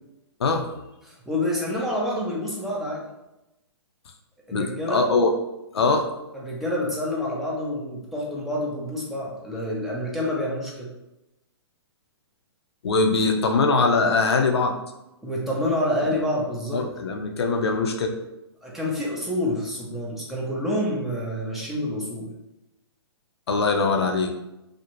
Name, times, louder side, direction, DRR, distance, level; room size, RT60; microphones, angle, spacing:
voice 1, 1.0-3.0 4.5-5.1 6.3-10.9 15.2-16.9 18.6-22.3, left 1 dB, ahead, -5 dB, 0.5 m, -28 dB
voice 2, 4.5-5.3 5.7-6.1 12.8-14.7 16.7-18.1 23.5-24.3, left 3 dB, 70° left, 5 dB, 0.5 m, -22 dB
2.4 x 2.1 x 2.9 m, 0.93 s
hypercardioid pair, 125°, 14 cm